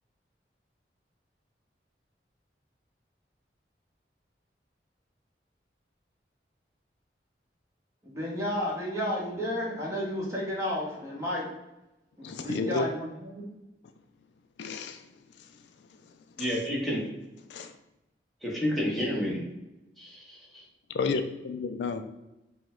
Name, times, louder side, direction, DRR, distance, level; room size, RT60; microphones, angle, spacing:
voice 1, 8.0-11.5 12.2-13.5, left 1 dB, 15° right, -5 dB, 1.2 m, -32 dB
voice 2, 12.2-12.9 14.6-15.0 15.4-15.5 16.0-16.6 17.5-17.7 20.9-22.0, left 4 dB, 85° left, 8 dB, 0.3 m, -32 dB
voice 3, 16.4-17.1 18.4-19.4 20.0-20.4, equal, ahead, -5 dB, 1.0 m, -30 dB
4.9 x 2.2 x 3.7 m, 0.94 s
head